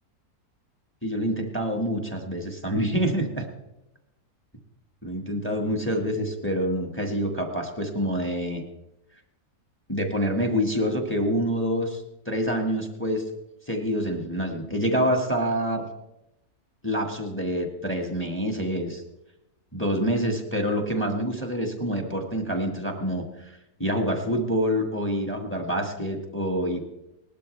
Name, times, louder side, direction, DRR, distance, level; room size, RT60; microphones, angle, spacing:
voice 1, 1.0-3.5 5.0-8.6 9.9-13.3 13.7-15.9 16.8-19.0 19.7-26.8, equal, 10° left, 3 dB, 1.5 m, -27 dB
19.0 x 12.0 x 3.3 m, 0.90 s
omnidirectional pair, 1.8 m